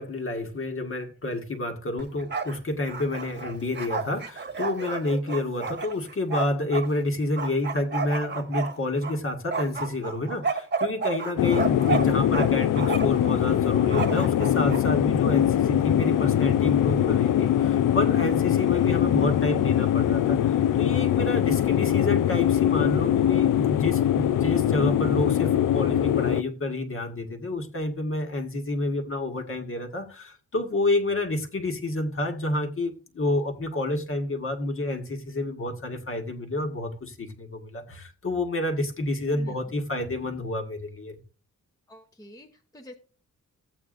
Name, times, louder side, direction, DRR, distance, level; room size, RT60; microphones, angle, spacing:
voice 1, 0.0-41.2, left 2 dB, 45° left, 1.5 m, -29 dB
Bark, 2.0-2.6 2.8-6.9 7.4-9.2 9.5-12.5 12.7-13.2 13.9-14.8, right 4 dB, 35° right, 1.2 m, -30 dB
sound 1, 11.4-26.4, left 11 dB, 90° left, 0.5 m, -22 dB
voice 2, 39.2-39.6 41.9-42.9, equal, 10° left, 0.9 m, -47 dB
14.5 x 8.5 x 2.5 m
wide cardioid pair, 140°, 31 cm